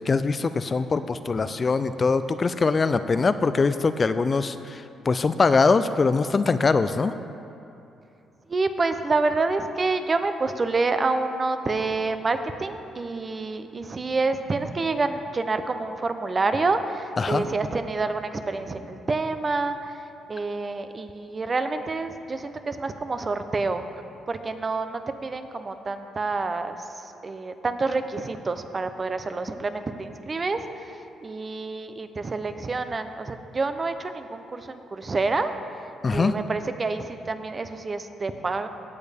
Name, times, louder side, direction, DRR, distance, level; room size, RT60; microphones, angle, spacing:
voice 1, 0.1-7.1 17.2-17.4 36.0-36.3, left 4 dB, 35° left, 12 dB, 0.3 m, -22 dB
voice 2, 8.5-19.8 20.3-23.8 24.3-26.8 27.2-30.9 31.2-35.5 36.1-38.7, right 3 dB, 30° right, 9 dB, 0.6 m, -28 dB
17.0 x 6.5 x 3.5 m, 2.8 s
cardioid pair, 90°, 0 cm